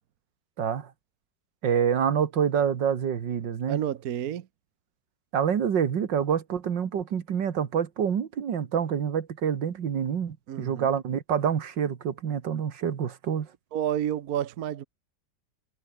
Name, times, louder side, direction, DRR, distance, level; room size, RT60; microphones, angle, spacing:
voice 1, 0.6-0.9 1.6-3.8 5.3-13.5, right 8 dB, 80° right, 2.3 m, -27 dB
voice 2, 3.7-4.5 10.5-10.9 13.7-14.8, right 10 dB, 60° right, 1.3 m, -30 dB
omnidirectional pair, 1.9 m